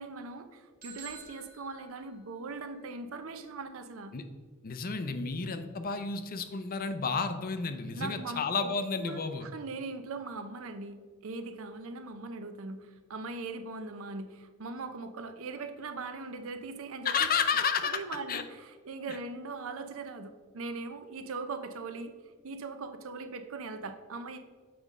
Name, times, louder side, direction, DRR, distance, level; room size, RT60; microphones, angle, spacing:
voice 1, 0.0-4.1 8.0-8.7 9.0-17.3 17.8-22.1 22.4-24.4, right 3 dB, 70° right, 8 dB, 0.6 m, -40 dB
sound 1, 0.8-2.7, right 5 dB, 45° right, 1.7 m, -50 dB
voice 2, 4.6-9.5 17.0-18.0 18.3-18.4 19.1-19.2, left 5 dB, 40° left, 9 dB, 0.5 m, -31 dB
7.1 x 5.2 x 3.6 m, 1.5 s
head